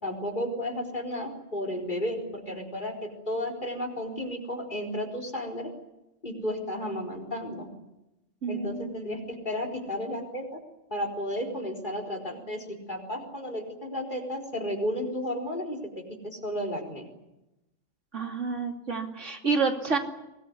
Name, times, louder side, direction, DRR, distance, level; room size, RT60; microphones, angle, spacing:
voice 1, 0.0-5.7 6.2-7.7 8.5-10.6 10.9-15.8 16.2-17.1, equal, 40° left, 4 dB, 4.4 m, -33 dB
voice 2, 8.4-8.8 18.1-20.0, right 4 dB, 70° right, 3 dB, 3.1 m, -28 dB
23.5 x 19.5 x 9.7 m, 0.94 s
omnidirectional pair, 1.3 m